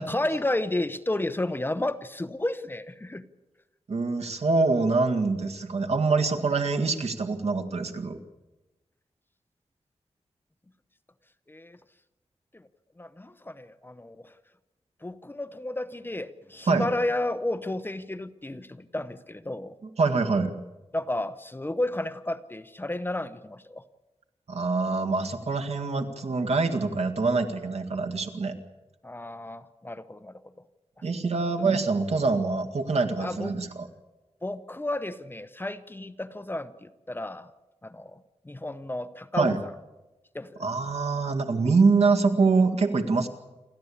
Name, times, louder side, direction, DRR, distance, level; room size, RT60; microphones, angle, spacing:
voice 1, 0.1-3.2 11.5-11.8 12.5-12.7 13.0-14.3 15.0-19.8 20.9-23.8 29.0-30.4 33.2-33.5 34.4-37.5 37.8-39.7 40.3-40.7, left 1 dB, 20° left, 12 dB, 0.8 m, -32 dB
voice 2, 3.9-8.2 16.7-16.9 20.0-20.5 24.5-28.5 31.0-33.9 39.4-39.6 40.6-43.3, right 4 dB, 75° right, 4 dB, 1.9 m, -25 dB
28.5 x 12.5 x 8.6 m, 1.1 s
wide cardioid pair, 120°, 11 cm